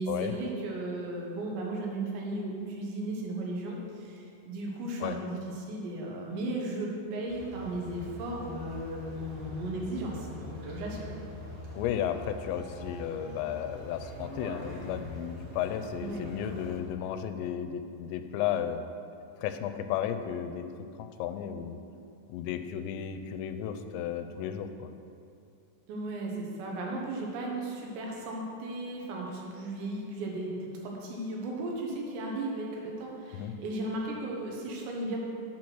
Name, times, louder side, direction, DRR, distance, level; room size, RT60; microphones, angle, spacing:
voice 1, 0.0-11.1 16.0-16.2 25.9-35.2, right 2 dB, 80° right, -1 dB, 3.5 m, -35 dB
sound 1, 7.3-16.8, left 1 dB, 60° right, 2.4 m, -44 dB
voice 2, 11.7-18.9 19.4-21.8 22.3-24.9 33.3-33.5, left 9 dB, 85° left, 8 dB, 2.8 m, -34 dB
8.6 x 6.1 x 6.1 m, 2.5 s
omnidirectional pair, 5.1 m